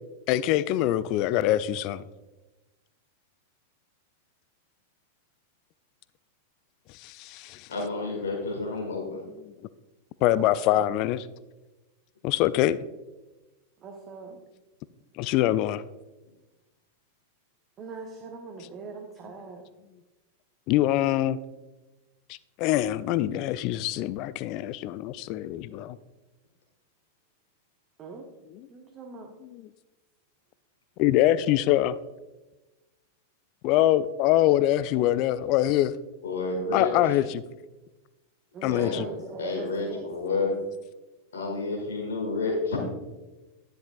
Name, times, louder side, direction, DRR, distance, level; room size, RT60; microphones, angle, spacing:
voice 1, 0.3-2.0 7.0-7.7 10.2-11.2 12.2-12.8 15.2-15.8 20.7-21.4 22.6-26.0 29.5-29.6 31.0-32.0 33.6-35.9 36.7-37.4 38.6-39.1, left 13 dB, 40° left, 0.3 m, -24 dB
voice 2, 7.7-9.2 36.2-37.2 38.7-40.5 41.3-42.8, left 3 dB, 65° left, 1.6 m, -30 dB
voice 3, 10.3-10.9 13.8-14.4 17.8-19.6 28.0-28.2 28.7-29.3 38.5-40.5, right 4 dB, 30° right, 1.0 m, -41 dB
10.5 x 10.5 x 2.4 m
figure-of-eight pair, 90°, 0 cm